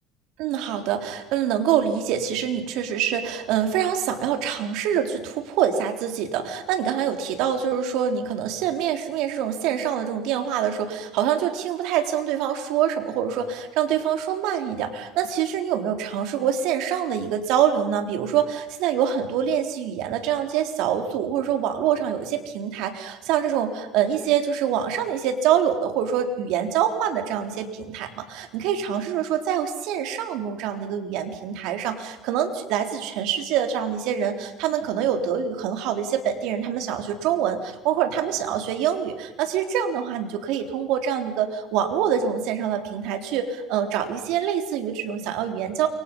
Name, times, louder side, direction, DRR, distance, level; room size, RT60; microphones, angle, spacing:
voice 1, 0.4-45.9, right 9 dB, 70° right, 5 dB, 3.8 m, -25 dB
29.0 x 25.0 x 5.5 m, 0.95 s
cardioid pair, 115°, 0 cm